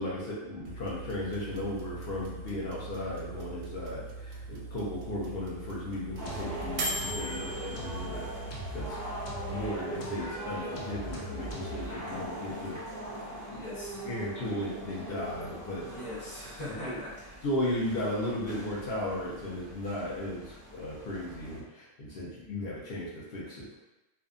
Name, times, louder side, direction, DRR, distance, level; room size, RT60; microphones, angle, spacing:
voice 1, 0.0-8.3 8.7-9.0 9.5-12.8 13.5-13.6 14.0-15.8 16.8-16.9 17.4-23.7, left 1 dB, 55° left, -5 dB, 0.8 m, -35 dB
sound 1, 0.7-9.7, right 2 dB, 90° right, 1.0 m, -40 dB
sound 2, 6.1-21.6, right 1 dB, 20° right, 0.7 m, -42 dB
sound 3, 6.2-12.2, equal, 90° left, 1.0 m, -41 dB
voice 2, 13.5-14.0 15.8-17.4, left 1 dB, 35° left, -9 dB, 1.0 m, -41 dB
2.7 x 2.2 x 2.4 m, 1.0 s
omnidirectional pair, 1.3 m